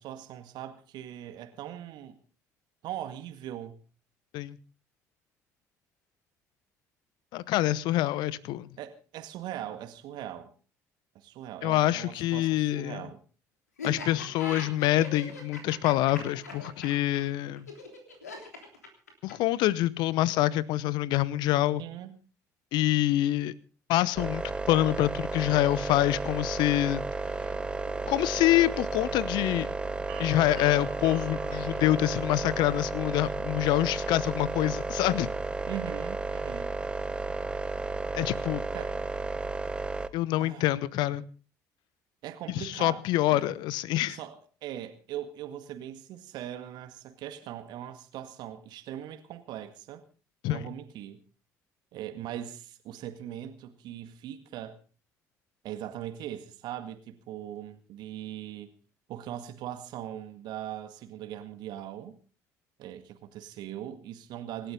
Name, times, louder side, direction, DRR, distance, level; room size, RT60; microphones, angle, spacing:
voice 1, 0.0-2.2 2.8-3.8 8.8-10.5 11.2-13.2 21.8-22.1 35.7-36.7 38.7-39.0 40.4-40.8 42.2-43.0 43.3-43.5 44.1-50.0 50.5-51.2 51.9-54.8 55.6-58.7 59.1-62.2 62.8-64.7, right 11 dB, 60° right, 1.9 m, -40 dB
voice 2, 7.3-8.7 11.6-13.0 13.8-17.7 19.2-21.8 22.7-23.5 23.9-27.0 28.1-29.7 30.2-35.3 38.1-38.6 40.1-41.2 42.5-44.2 50.4-50.6, left 15 dB, 60° left, 0.9 m, -26 dB
Laughter, 13.8-19.5, left 2 dB, 80° left, 3.3 m, -41 dB
sound 1, 24.2-40.1, right 3 dB, 10° right, 1.2 m, -33 dB
sound 2, 27.2-32.3, right 11 dB, 75° right, 2.4 m, -49 dB
26.5 x 12.5 x 3.8 m
figure-of-eight pair, 50°, 8 cm